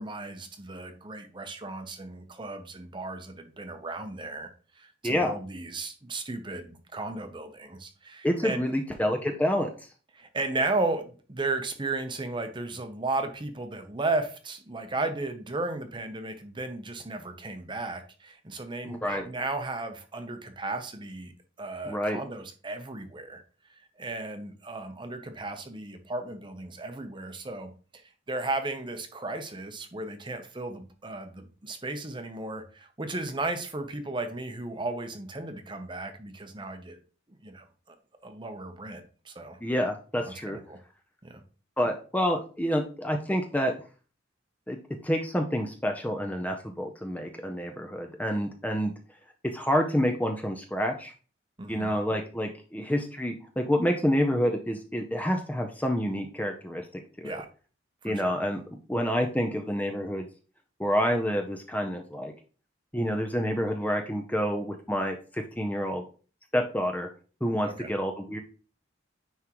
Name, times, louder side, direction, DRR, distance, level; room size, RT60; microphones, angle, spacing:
voice 1, 0.0-4.5 4.8-8.7 10.1-21.3 21.6-23.4 23.7-28.0 28.3-37.0 37.3-38.0 38.2-39.6 40.2-40.8 41.2-41.4 51.6-51.9 57.2-57.5 58.0-58.4 67.6-67.9, right 2 dB, 25° right, 7 dB, 0.7 m, -35 dB
voice 2, 5.0-5.3 8.2-9.7 18.8-19.2 21.9-22.2 39.6-40.6 41.8-43.7 44.7-44.8 45.0-48.9 49.5-51.1 51.7-56.8 57.2-57.4 58.0-58.6 58.9-60.3 60.8-62.3 62.9-66.0 66.5-67.1 67.4-68.4, equal, 10° left, 4 dB, 0.5 m, -28 dB
9.6 x 3.6 x 3.0 m, 0.38 s
head